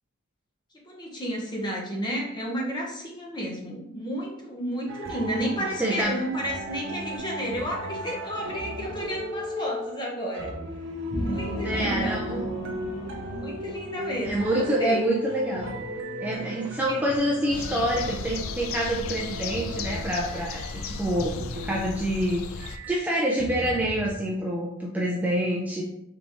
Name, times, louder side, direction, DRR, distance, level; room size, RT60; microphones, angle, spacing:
voice 1, 0.8-10.5 11.2-12.4 13.3-15.0 16.9-17.1, equal, 20° left, -2 dB, 0.8 m, -32 dB
sound 1, 4.9-22.3 22.6-24.1, equal, 60° right, 0.6 m, -37 dB
voice 2, 5.8-6.2 11.6-12.4 14.2-15.7 16.2-21.3 21.6-25.8, right 1 dB, 10° right, -4 dB, 0.4 m, -27 dB
sound 2, 11.1-14.7, right 1 dB, 35° left, 1.5 m, -34 dB
sound 3, 17.5-22.8, left 4 dB, 70° left, 0.3 m, -35 dB
4.0 x 3.4 x 2.9 m, 0.82 s
head